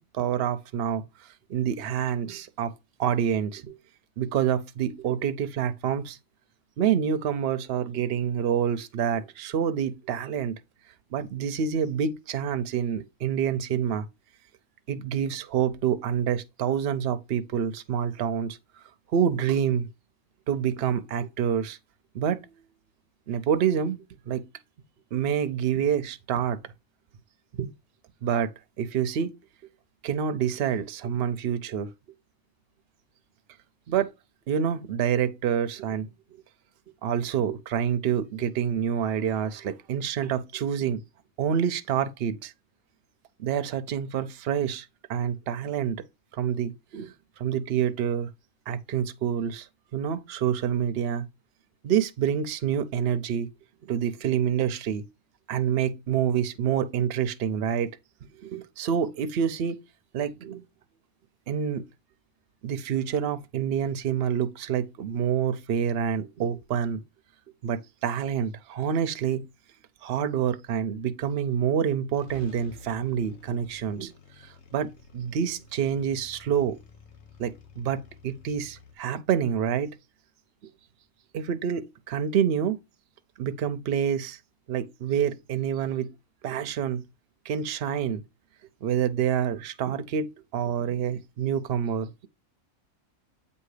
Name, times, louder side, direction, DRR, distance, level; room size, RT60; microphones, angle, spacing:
voice 1, 0.0-2.7 3.0-3.8 4.2-6.2 6.8-10.6 11.1-14.1 14.9-18.6 19.1-19.9 20.5-21.8 22.1-22.4 23.3-24.0 24.3-24.4 25.1-26.6 27.6-27.7 28.2-28.5 28.8-29.3 30.0-31.9 33.9-34.1 34.5-36.4 37.0-41.0 41.4-42.5 43.4-46.0 46.4-48.3 48.7-49.7 49.9-51.3 51.8-53.5 53.8-55.0 55.5-57.9 58.4-59.8 60.1-60.6 61.5-61.9 62.6-67.0 67.6-69.5 70.0-74.1 74.4-76.8 77.4-80.0 81.3-82.8 83.4-84.4 84.7-86.1 86.4-87.0 87.4-88.2 88.8-92.3, right 8 dB, 60° right, 0.7 m, -27 dB
sound 1, 71.8-71.9 72.1-78.9, left 4 dB, 55° left, 1.1 m, -51 dB
8.0 x 2.8 x 4.8 m
omnidirectional pair, 1.5 m